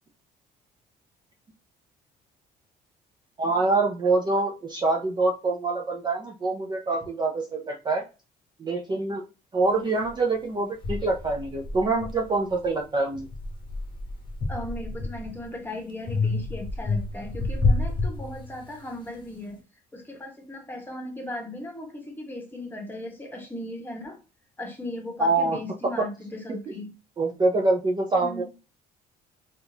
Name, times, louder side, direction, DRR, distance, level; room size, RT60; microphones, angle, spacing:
voice 1, 3.4-8.0 8.6-9.2 9.5-13.3 25.2-25.6 26.0-26.1 26.5-26.7 27.2-28.4, right 3 dB, 25° right, 0.5 m, -25 dB
sound 1, 10.0-10.1 10.8-12.7 13.1-15.5 16.1-18.8, left 3 dB, 30° left, 0.9 m, -29 dB
voice 2, 14.5-19.6 19.9-24.2 24.6-26.9 28.2-28.4, left 1 dB, 10° left, 1.1 m, -37 dB
3.5 x 2.5 x 2.7 m
cardioid pair, 110°, 17 cm